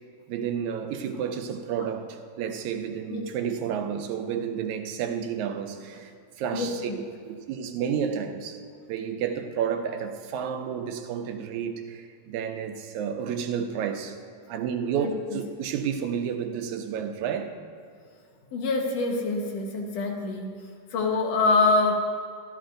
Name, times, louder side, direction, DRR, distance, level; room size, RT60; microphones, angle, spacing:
voice 1, 0.3-6.9 7.3-8.6 8.9-14.2 14.5-17.5, right 7 dB, 85° right, 2.1 m, -31 dB
voice 2, 6.5-7.0 15.0-15.4 18.5-20.5 20.9-21.9, left 3 dB, 65° left, 2.3 m, -25 dB
14.5 x 12.5 x 2.6 m
omnidirectional pair, 3.3 m